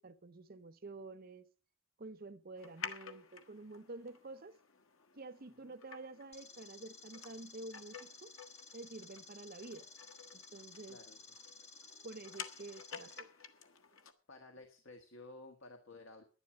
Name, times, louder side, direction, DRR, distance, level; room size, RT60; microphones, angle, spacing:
voice 1, 0.0-1.5 2.0-4.6 5.1-8.3 8.7-9.9 10.3-11.0 12.0-13.3, right 2 dB, 45° right, 0.8 m, -49 dB
sound 1, 2.6-14.1, left 6 dB, 90° left, 1.4 m, -52 dB
sound 2, 6.3-13.2, left 4 dB, 35° left, 2.1 m, -55 dB
voice 2, 14.3-16.2, left 2 dB, 70° left, 1.6 m, -54 dB
11.0 x 10.5 x 6.1 m
head